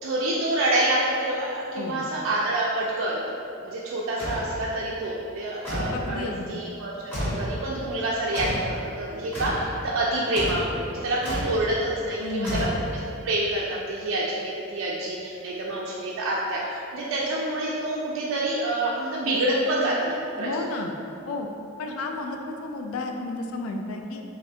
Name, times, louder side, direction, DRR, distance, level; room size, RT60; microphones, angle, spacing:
voice 1, 0.0-6.9 7.2-12.7 13.2-20.6, right 1 dB, 70° right, -5 dB, 0.3 m, -27 dB
sound 1, 4.2-4.5 5.6-6.0 7.1-7.5 8.3-8.7 9.3-9.7 10.3-10.7 11.2-11.6 12.4-13.1, equal, 10° left, 0.7 m, -30 dB
voice 2, 5.9-6.6 12.2-12.8 20.4-20.9 21.3-21.5 21.8-24.2, left 3 dB, 85° left, 3 dB, 0.3 m, -32 dB
3.1 x 2.5 x 2.7 m, 2.7 s
head